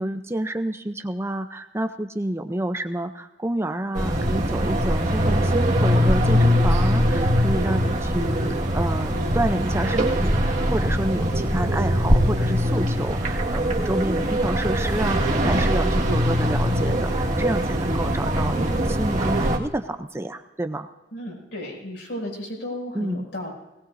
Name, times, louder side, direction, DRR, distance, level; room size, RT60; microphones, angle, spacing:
voice 1, 0.0-20.9 22.9-23.3, right 1 dB, 15° right, 8 dB, 0.6 m, -29 dB
sound 1, 3.9-19.6, equal, 45° right, 1.8 m, -22 dB
voice 2, 21.1-23.5, left 1 dB, 70° left, -1 dB, 6.4 m, -34 dB
19.5 x 18.5 x 2.7 m, 1.0 s
head